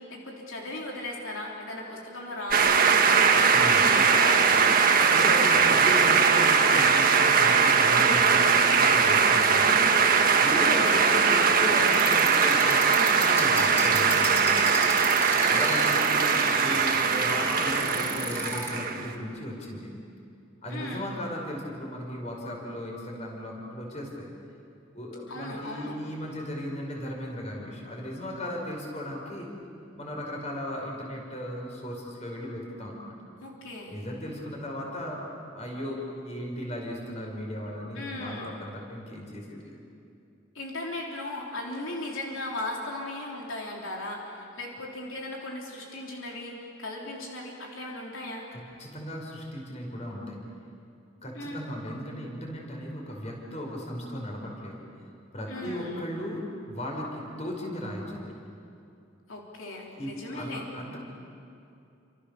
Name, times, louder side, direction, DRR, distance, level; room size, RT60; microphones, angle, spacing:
voice 1, 0.1-4.8 10.5-10.8 15.9-16.4 20.7-21.1 25.3-26.0 33.4-34.0 37.9-38.5 40.6-46.5 46.8-48.5 51.3-51.6 55.5-56.1 59.3-60.6, left 2 dB, 80° left, -1 dB, 3.5 m, -37 dB
sound 1, 2.5-19.1, right 5 dB, 45° right, 1.7 m, -21 dB
voice 2, 3.5-3.9 5.1-9.8 10.4-14.6 15.5-19.9 20.6-24.3 24.9-29.5 29.9-33.2 33.9-35.3 35.5-39.8 48.5-50.4 51.2-54.8 55.3-58.4 59.9-61.0, left 1 dB, 35° left, -1 dB, 5.4 m, -36 dB
sound 2, 11.8-18.7, equal, 10° left, 4.3 m, -35 dB
29.0 x 26.5 x 6.9 m, 2.6 s
head